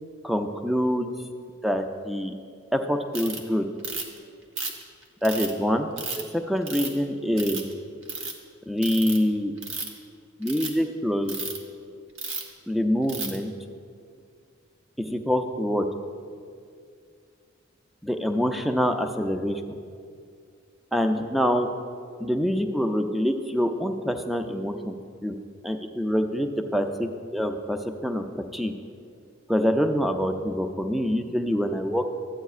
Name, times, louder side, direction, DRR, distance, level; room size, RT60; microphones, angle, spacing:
voice 1, 0.2-1.1 1.6-2.3 2.7-3.7 5.2-5.9 6.3-7.7 8.7-9.5 10.4-11.4 12.7-13.5 15.0-15.9 18.0-19.6 20.9-21.7 22.2-25.0 25.2-25.4 25.6-28.3 28.5-28.7 29.5-32.0, equal, ahead, 6 dB, 0.4 m, -25 dB
Ratchet pawl, 3.1-3.4 3.8-4.2 4.6-5.5 6.0-6.2 6.7-7.0 7.4-7.7 8.0-8.3 8.8-9.2 9.6-10.0 10.4-10.7 11.3-11.6 12.2-12.5 13.1-13.4, right 4 dB, 70° right, 1.0 m, -32 dB
13.0 x 9.0 x 2.4 m, 2.2 s
head